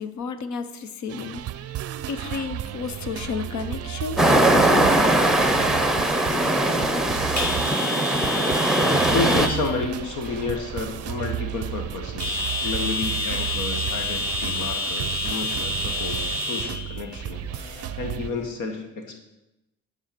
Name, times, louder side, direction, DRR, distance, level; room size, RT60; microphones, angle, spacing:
voice 1, 0.0-1.7 2.1-5.1, left 5 dB, 70° left, 10 dB, 0.8 m, -32 dB
sound 1, 1.1-18.3, right 13 dB, 55° right, 0.5 m, -33 dB
sound 2, 2.3-18.5, left 2 dB, 35° left, 3.8 m, -31 dB
sound 3, 4.2-9.5, right 1 dB, ahead, 0.8 m, -20 dB
voice 2, 9.0-19.2, left 4 dB, 85° left, 4 dB, 1.5 m, -31 dB
9.0 x 4.8 x 6.6 m, 0.94 s
cardioid pair, 90°, 30 cm